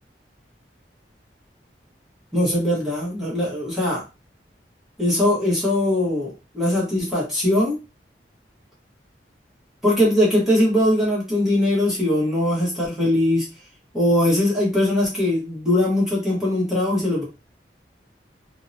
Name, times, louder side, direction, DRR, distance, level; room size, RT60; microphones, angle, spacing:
voice 1, 2.3-4.0 5.0-7.8 9.8-13.5 13.9-17.2, left 1 dB, ahead, -7 dB, 1.0 m, -21 dB
2.7 x 2.0 x 2.6 m, 0.27 s
head